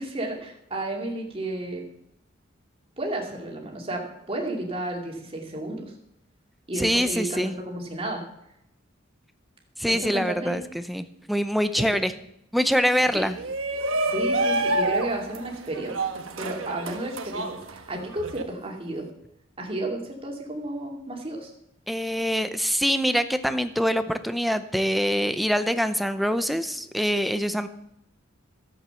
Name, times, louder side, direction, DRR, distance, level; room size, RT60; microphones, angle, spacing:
voice 1, 0.0-1.8 3.0-4.0 4.3-5.9 6.7-8.2 9.9-10.6 11.8-11.9 13.1-13.3 13.9-16.0 16.4-19.1 19.6-21.5, right 1 dB, 30° right, 1 dB, 2.6 m, -32 dB
voice 2, 6.8-7.5 9.8-12.1 12.5-13.3 21.9-27.7, equal, ahead, 10 dB, 0.6 m, -24 dB
Shout, 13.3-18.4, right 2 dB, 80° right, 1.2 m, -28 dB
13.0 x 8.1 x 6.9 m, 0.79 s
head